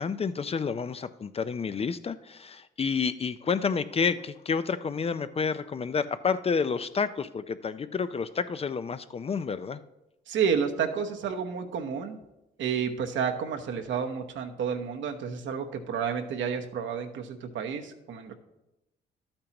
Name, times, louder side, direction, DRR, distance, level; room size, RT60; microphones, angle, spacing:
voice 1, 0.0-9.8, left 5 dB, 30° left, 13 dB, 0.4 m, -29 dB
voice 2, 10.3-12.2 12.6-18.3, right 7 dB, 70° right, 5 dB, 1.0 m, -30 dB
12.0 x 8.7 x 2.9 m, 0.94 s
cardioid pair, 90°, 20 cm